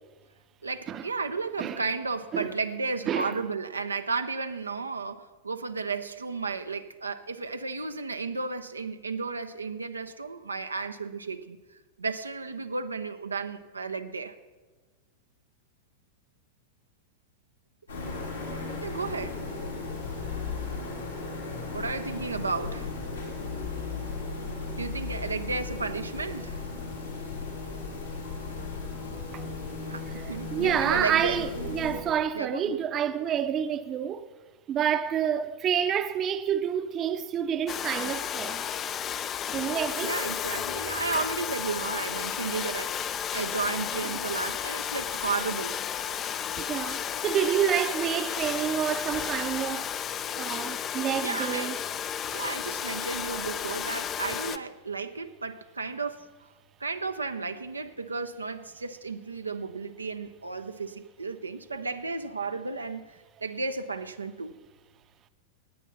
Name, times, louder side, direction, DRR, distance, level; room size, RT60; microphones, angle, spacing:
voice 1, 0.6-11.6 12.0-14.4 18.8-19.4 21.7-22.9 24.8-26.6 29.9-31.4 32.3-32.8 40.0-45.8 51.2-51.8 52.3-56.3 56.8-64.6, right 4 dB, 80° right, 0.6 m, -33 dB
voice 2, 3.1-3.4 29.3-29.4 30.1-34.2 34.7-38.6 39.5-40.1 46.6-50.0 50.4-51.8, right 9 dB, 30° right, 0.7 m, -28 dB
sound 1, 17.9-32.0, left 4 dB, 75° left, 3.4 m, -36 dB
Domestic sounds home sounds, 37.7-54.6, left 9 dB, 30° left, 0.5 m, -33 dB
18.0 x 9.0 x 5.8 m
figure-of-eight pair, 90°, 0 cm